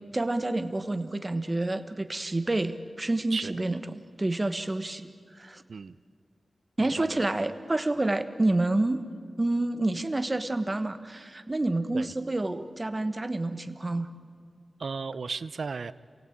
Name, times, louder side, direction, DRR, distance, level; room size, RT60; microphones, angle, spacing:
voice 1, 0.1-5.1 5.4-5.6 6.8-9.0 9.4-14.1, right 2 dB, 30° right, 10 dB, 1.3 m, -28 dB
voice 2, 6.8-7.3 11.9-12.1 14.8-15.9, right 4 dB, 75° right, 15 dB, 0.6 m, -35 dB
28.0 x 17.0 x 8.7 m, 2.2 s
wide cardioid pair, 80°, 0 cm